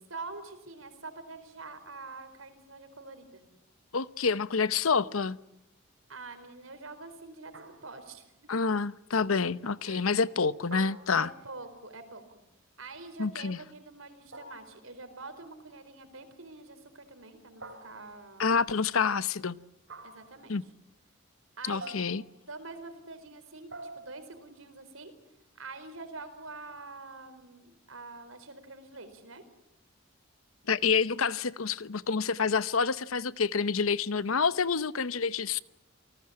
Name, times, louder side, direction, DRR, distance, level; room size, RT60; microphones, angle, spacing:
voice 1, 0.1-3.4 6.1-8.5 9.8-10.1 11.1-12.4 12.8-18.6 20.0-20.6 21.6-22.0 22.5-25.1 25.6-29.4, right 3 dB, 80° right, 4.6 m, -46 dB
voice 2, 3.9-5.4 8.5-11.3 13.2-13.6 18.4-19.6 20.5-20.6 21.7-22.2 30.7-35.6, left 5 dB, 90° left, 0.9 m, -28 dB
sound 1, 7.5-8.2 10.7-11.6 14.3-14.9 17.6-18.3 19.9-20.4 21.8-22.4 23.7-24.3, right 2 dB, 65° right, 3.6 m, -47 dB
29.0 x 19.0 x 8.8 m
head